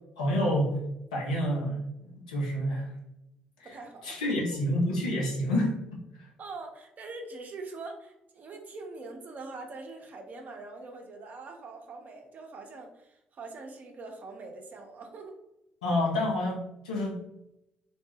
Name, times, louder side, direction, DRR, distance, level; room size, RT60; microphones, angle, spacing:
voice 1, 0.2-0.8 1.1-1.8 2.1-2.9 4.0-5.8 15.8-17.2, left 1 dB, 75° left, -3 dB, 0.7 m, -28 dB
voice 2, 3.6-4.2 6.4-15.4, right 3 dB, 45° right, 3 dB, 0.6 m, -43 dB
2.7 x 2.1 x 3.3 m, 0.87 s
figure-of-eight pair, 45°, 4 cm